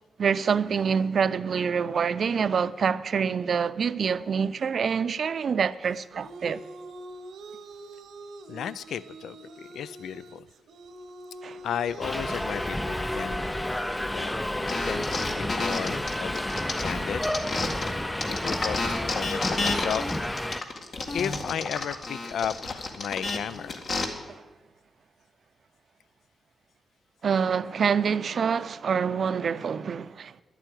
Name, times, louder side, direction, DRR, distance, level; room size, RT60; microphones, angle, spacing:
voice 1, 0.2-6.6 11.4-11.6 24.3-24.4 27.2-30.4, right 6 dB, 60° right, 0.5 m, -26 dB
sound 1, 5.9-14.8, right 2 dB, 85° right, 1.0 m, -45 dB
voice 2, 8.5-10.5 11.6-16.4 16.8-17.2 18.0-20.2 21.1-23.8, left 8 dB, 85° left, 0.3 m, -34 dB
Subway metro underground, 12.0-20.6, left 1 dB, 10° left, 0.4 m, -30 dB
sound 2, 14.7-17.9 18.2-24.0, left 3 dB, 60° left, 1.9 m, -31 dB
11.5 x 9.0 x 9.2 m
cardioid pair, 90°, 0 cm